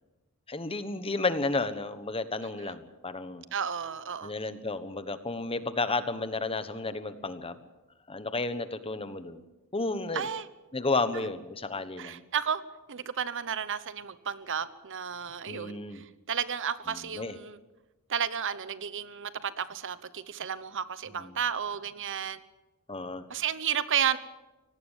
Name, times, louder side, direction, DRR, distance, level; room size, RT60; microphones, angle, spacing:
voice 1, 0.5-3.4 4.2-7.6 8.1-9.4 9.7-10.3 10.7-12.2 15.5-16.0 16.9-17.3 21.2-21.3 22.9-23.2, left 3 dB, 25° left, 11 dB, 1.2 m, -32 dB
voice 2, 3.5-4.3 10.1-10.5 11.1-11.2 12.0-12.6 12.9-17.6 18.1-22.4 23.3-24.2, right 8 dB, 60° right, 14 dB, 1.0 m, -32 dB
25.5 x 18.5 x 7.4 m, 1.1 s
head